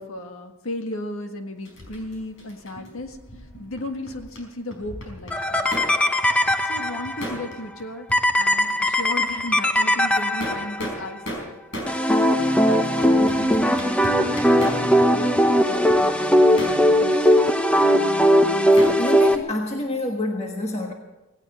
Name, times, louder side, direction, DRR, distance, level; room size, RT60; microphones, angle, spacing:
voice 1, 0.0-3.2 3.6-5.7 6.6-8.1 8.4-11.5 12.2-16.6 17.0-17.4, left 1 dB, 80° left, 5 dB, 1.7 m, -35 dB
sound 1, 1.6-4.4 4.7-6.0 6.2-7.8 8.1-8.2 8.6-9.1 9.5-9.6 10.2-12.0 12.4-12.5 13.0-15.1 15.4-19.7, equal, 65° left, 4.9 m, -36 dB
sound 2, 5.3-7.2 8.1-10.9 11.9-19.4, equal, 5° left, 0.8 m, -19 dB
voice 2, 19.0-20.9, left 1 dB, 30° left, 1 dB, 1.4 m, -27 dB
17.5 x 17.0 x 4.3 m, 1.0 s
head